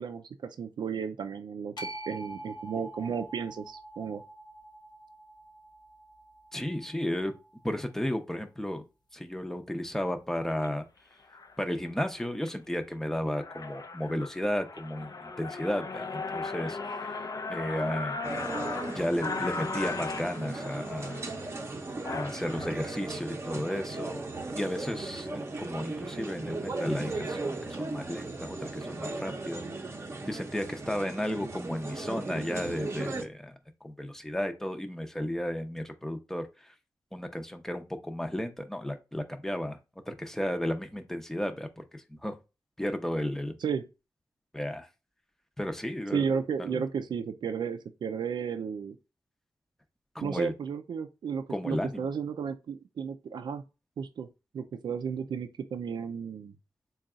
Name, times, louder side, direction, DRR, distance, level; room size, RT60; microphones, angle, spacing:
voice 1, 0.0-4.2 43.6-43.9 46.1-49.0 50.2-53.6 54.0-54.3 54.5-56.6, right 6 dB, 90° right, 0.4 m, -33 dB
sound 1, 1.8-8.0, right 1 dB, 80° left, 0.8 m, -46 dB
voice 2, 6.5-7.3 7.6-8.8 9.1-10.8 11.6-17.0 17.5-18.2 18.8-21.3 22.1-24.3 24.6-29.6 30.3-33.5 33.8-36.4 37.1-39.8 40.1-41.8 42.2-42.3 42.8-43.6 44.5-44.9 45.6-46.2 50.2-50.5 51.5-52.1, left 1 dB, 5° left, 0.6 m, -33 dB
sound 2, 10.5-10.7 11.3-11.6 12.1-12.5 12.9-13.0 13.3-22.7, left 4 dB, 55° left, 0.5 m, -37 dB
sound 3, 18.2-33.3, right 3 dB, 35° right, 0.7 m, -37 dB
3.9 x 2.3 x 3.6 m
wide cardioid pair, 110°, 7 cm